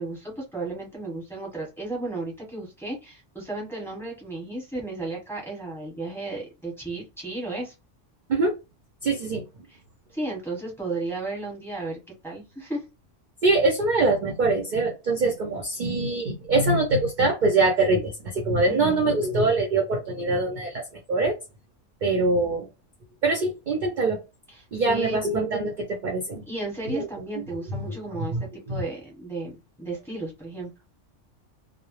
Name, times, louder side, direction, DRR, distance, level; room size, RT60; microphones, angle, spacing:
voice 1, 0.0-7.7 9.7-9.8 10.1-12.0 12.2-12.8 18.6-19.0 24.5-25.4 26.5-28.3 28.7-30.7, right 2 dB, ahead, 0.8 m, -34 dB
voice 2, 9.0-9.4 13.4-20.8 21.1-21.3 22.0-22.7 23.2-24.2 24.7-26.4 26.9-27.1 27.7-28.0 28.3-28.8, right 2 dB, 55° right, 0.5 m, -23 dB
2.1 x 2.0 x 3.0 m
omnidirectional pair, 1.3 m